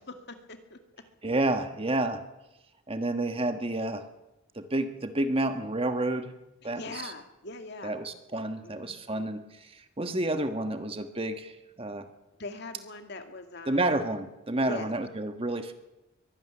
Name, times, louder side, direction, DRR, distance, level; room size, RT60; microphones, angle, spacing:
voice 1, 0.1-0.8 6.6-7.9 8.6-9.4 12.4-13.9 14.6-14.9, left 2 dB, 55° left, 6 dB, 2.3 m, -42 dB
voice 2, 1.2-2.2 2.9-4.0 4.5-6.3 6.6-7.1 7.8-12.1 13.7-15.7, right 2 dB, 25° right, 8 dB, 1.4 m, -30 dB
23.0 x 13.0 x 10.0 m, 0.96 s
head